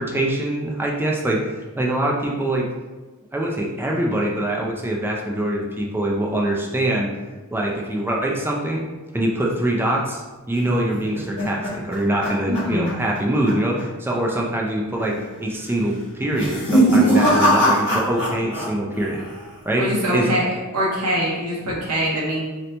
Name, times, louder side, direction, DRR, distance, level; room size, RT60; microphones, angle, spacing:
voice 1, 0.0-1.4 1.8-2.7 3.3-7.1 7.5-8.8 9.1-10.2 10.5-19.2 19.6-19.8 20.1-20.3, right 1 dB, 10° right, -2 dB, 0.4 m, -23 dB
sound 1, 10.7-13.2 13.5-13.8 14.1-14.2 15.0-15.4 16.2-18.7 18.9-19.5, right 1 dB, 55° left, 1.3 m, -20 dB
voice 2, 12.5-12.9 19.8-20.5 20.7-22.4, equal, 90° right, -5 dB, 0.9 m, -23 dB
2.8 x 2.7 x 3.2 m, 1.3 s
head